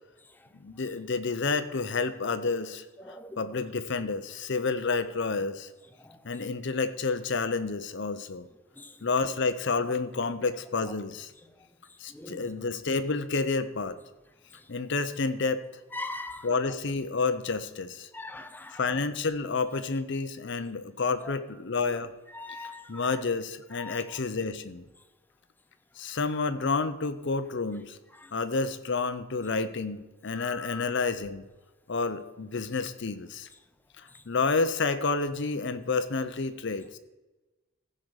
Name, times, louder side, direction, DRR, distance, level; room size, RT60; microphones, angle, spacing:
voice 1, 0.5-5.7 6.2-8.5 9.0-11.3 12.0-14.0 14.7-15.6 16.4-18.1 18.8-22.1 22.9-24.8 26.0-28.0 28.3-31.4 31.9-33.5 34.0-37.0, left 4 dB, 60° left, 0.7 m, -30 dB
voice 2, 3.0-3.4 8.8-8.9 12.1-12.5 15.9-16.5 18.1-18.8 22.3-22.9 23.8-24.0 30.4-30.8, left 2 dB, 10° left, 0.5 m, -40 dB
15.0 x 5.0 x 6.4 m
head